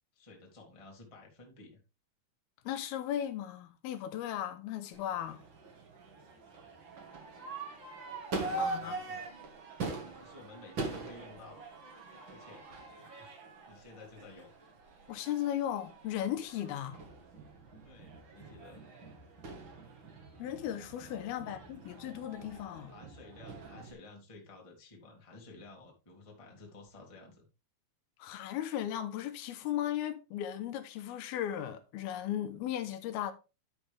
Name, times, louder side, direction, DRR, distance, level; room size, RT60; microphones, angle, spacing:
voice 1, 0.1-1.8 6.6-6.8 8.6-9.2 10.2-11.8 12.3-12.6 13.0-13.3 13.7-14.5 17.8-18.8 21.2-21.6 22.9-27.5, left 3 dB, 15° left, 1.3 m, -53 dB
voice 2, 2.7-5.4 8.6-9.0 15.1-17.0 20.4-22.9 28.2-33.3, left 11 dB, 85° left, 2.7 m, -36 dB
Crowd / Fireworks, 4.9-23.9, right 3 dB, 50° right, 1.5 m, -43 dB
11.0 x 5.4 x 3.4 m
omnidirectional pair, 4.4 m